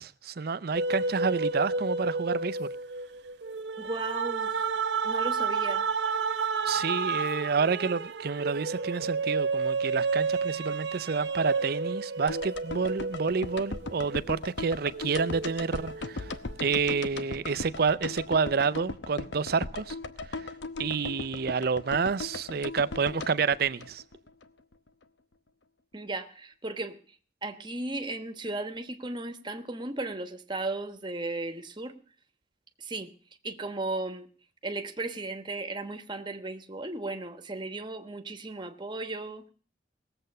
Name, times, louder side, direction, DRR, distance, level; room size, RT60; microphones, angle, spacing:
voice 1, 0.0-2.7 6.6-16.3 16.6-20.0 20.3-20.5 20.8-24.0, right 5 dB, 55° right, 0.5 m, -29 dB
sound 1, 0.7-14.5 14.9-16.6, right 4 dB, 75° right, 0.9 m, -31 dB
voice 2, 3.8-4.5 5.0-5.9 25.9-27.0 27.4-32.0 32.8-33.1 33.4-34.3 34.6-39.5, right 2 dB, 25° right, 1.2 m, -35 dB
sound 2, 12.3-24.5 24.7-24.8, left 3 dB, 85° left, 0.9 m, -38 dB
18.5 x 7.9 x 6.6 m
head